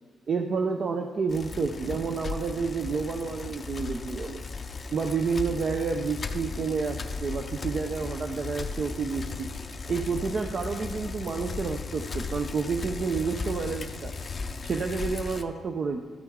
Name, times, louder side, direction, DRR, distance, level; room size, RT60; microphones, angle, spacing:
voice 1, 0.3-4.4 4.9-9.5 9.9-14.1 14.6-16.0, right 5 dB, 45° right, 4 dB, 0.5 m, -29 dB
Bicycle, 1.3-15.4, left 4 dB, 35° left, 0.4 m, -36 dB
13.0 x 6.1 x 3.6 m, 1.5 s
cardioid pair, 115°, 0 cm